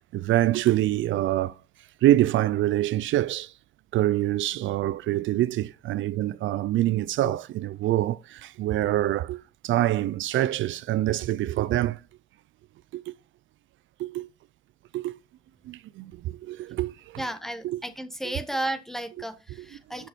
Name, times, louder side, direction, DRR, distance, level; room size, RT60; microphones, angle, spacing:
voice 1, 0.1-1.6 2.0-3.5 3.9-12.0 12.9-13.1 14.0-14.3 14.9-15.2 15.6-17.2 17.6-17.8 18.2-18.3 19.6-19.7 20.0-20.1, right 14 dB, 75° right, 0.5 m, -25 dB
voice 2, 17.2-20.1, right 1 dB, ahead, 1.4 m, -33 dB
8.0 x 6.3 x 4.4 m
cardioid pair, 90°, 20 cm